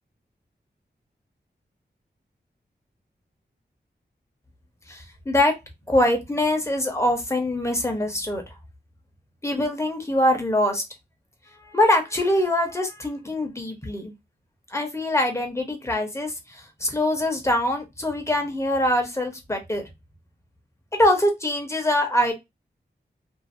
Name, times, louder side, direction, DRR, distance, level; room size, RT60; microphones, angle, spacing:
voice 1, 4.9-5.5 5.9-8.4 9.4-10.8 11.6-14.1 14.7-19.8 20.9-22.3, left 1 dB, 15° left, 1.0 m, -23 dB
2.7 x 2.7 x 2.6 m
wide cardioid pair, 90°, 18 cm